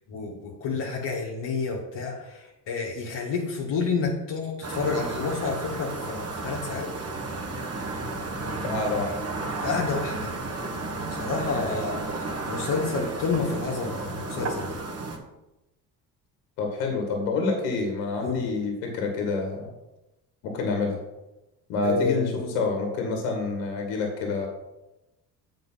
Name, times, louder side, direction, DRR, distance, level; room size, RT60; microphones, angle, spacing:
voice 1, 0.1-6.9 9.6-10.3 11.1-14.8 18.2-18.4 21.8-22.4, left 4 dB, 60° left, -4 dB, 2.0 m, -29 dB
sound 1, 4.6-15.2, right 2 dB, 30° right, 1.6 m, -33 dB
voice 2, 8.6-9.1 16.6-19.7 20.4-21.0 21.7-24.5, left 3 dB, 75° left, 2 dB, 1.9 m, -27 dB
7.8 x 5.1 x 5.7 m, 0.96 s
hypercardioid pair, 55°, 48 cm